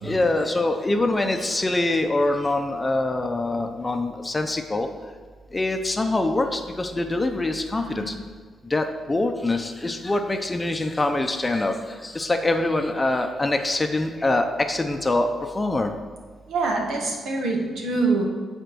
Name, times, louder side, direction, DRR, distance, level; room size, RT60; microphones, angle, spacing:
voice 1, 0.0-4.9 5.5-8.1 8.7-11.8 12.0-15.9, left 2 dB, 15° left, 5 dB, 0.7 m, -24 dB
Sigh, 7.6-8.2, right 1 dB, 20° right, 2.3 m, -39 dB
voice 2, 16.5-18.3, right 3 dB, 85° right, 1 dB, 1.7 m, -24 dB
9.3 x 4.5 x 6.2 m, 1.5 s
cardioid pair, 135°, 0 cm